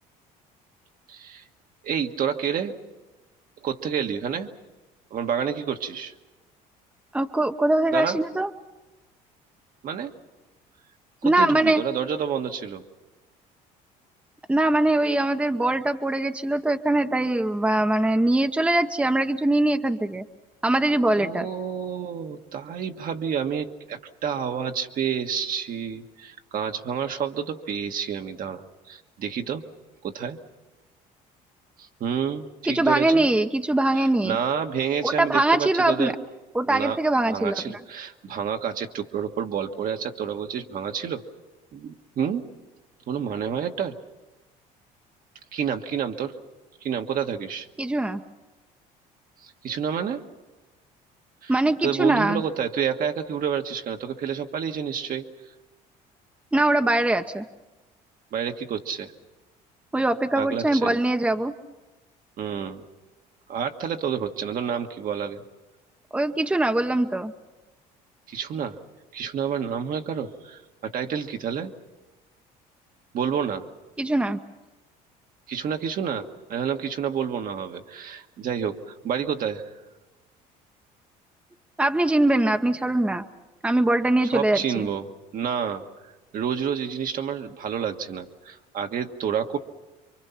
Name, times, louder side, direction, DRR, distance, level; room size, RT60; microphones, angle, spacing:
voice 1, 1.1-1.4 1.8-2.8 3.6-4.5 5.1-6.1 7.9-8.2 9.8-10.1 11.2-12.8 21.2-29.6 30.0-30.4 31.8-33.2 33.9-36.1 36.7-37.0 37.3-41.2 41.7-42.5 43.1-44.0 45.5-46.4 46.8-47.7 49.4-50.2 51.4-51.5 51.8-55.3 58.3-59.1 60.3-60.9 62.4-62.8 63.5-65.4 68.3-68.8 69.1-71.7 73.1-73.7 75.5-78.8 79.0-79.6 84.3-85.0 85.3-85.8 86.3-89.6, right 7 dB, 55° right, 5 dB, 1.5 m, -29 dB
voice 2, 7.1-8.5 11.2-11.8 14.5-20.2 20.6-21.5 32.6-34.4 35.0-36.1 36.5-37.6 47.8-48.2 51.5-52.4 56.5-57.4 59.9-61.5 66.1-67.3 74.0-74.4 81.8-83.2 83.6-84.9, right 1 dB, 5° right, 7 dB, 0.9 m, -22 dB
27.5 x 24.0 x 5.8 m, 1.1 s
supercardioid pair, 90°, 17 cm